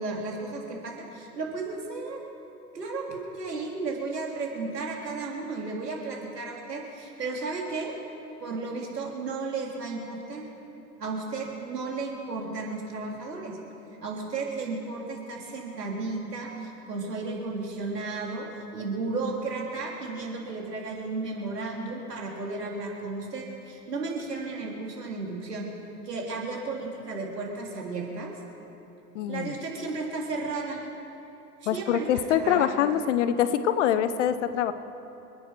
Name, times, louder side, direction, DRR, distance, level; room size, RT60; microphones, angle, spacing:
voice 1, 0.0-2.2 2.7-7.9 8.4-10.4 11.0-13.6 14.0-18.5 18.7-25.7 26.1-28.3 29.3-30.8 31.6-32.7, right 3 dB, 75° right, -1 dB, 3.5 m, -34 dB
voice 2, 29.1-29.5 31.7-34.7, left 9 dB, 50° left, 12 dB, 0.9 m, -24 dB
28.5 x 10.0 x 4.7 m, 2.8 s
figure-of-eight pair, 100°, 48 cm